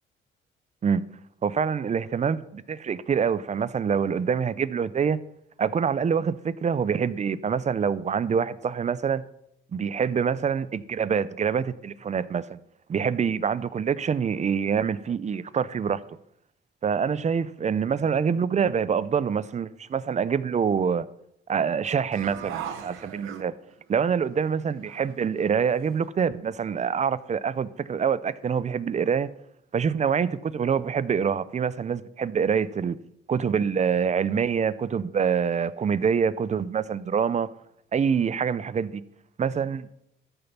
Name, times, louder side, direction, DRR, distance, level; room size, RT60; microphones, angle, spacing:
voice 1, 1.4-5.2 5.6-9.2 9.7-12.6 12.9-16.0 16.8-21.1 21.5-23.5 23.9-29.3 29.7-33.0 33.3-37.5 37.9-39.0 39.4-39.8, right 6 dB, 35° right, 0.6 m, -25 dB
sound 1, 22.1-23.9 24.4-24.5 24.8-26.1, right 9 dB, 85° right, 1.0 m, -39 dB
13.5 x 5.3 x 5.9 m
cardioid pair, 90°, 20 cm